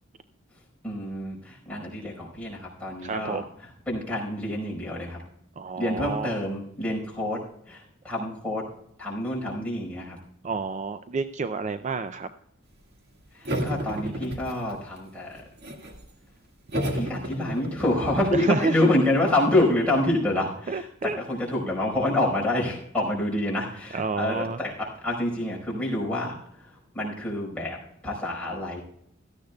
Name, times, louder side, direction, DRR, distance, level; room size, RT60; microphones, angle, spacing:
voice 1, 0.8-3.4 3.9-5.2 5.8-7.4 7.7-8.6 9.0-10.2 13.3-15.4 16.9-27.8 28.0-28.8, left 1 dB, 5° left, -4 dB, 4.7 m, -27 dB
voice 2, 3.0-3.5 5.6-6.4 10.4-12.3 18.3-18.9 20.7-21.2 23.9-24.6, right 4 dB, 35° right, 10 dB, 0.4 m, -29 dB
sound 1, 13.4-15.0 15.3-16.0 16.7-20.0, right 1 dB, 55° right, 1.8 m, -33 dB
17.0 x 13.5 x 2.3 m, 0.73 s
head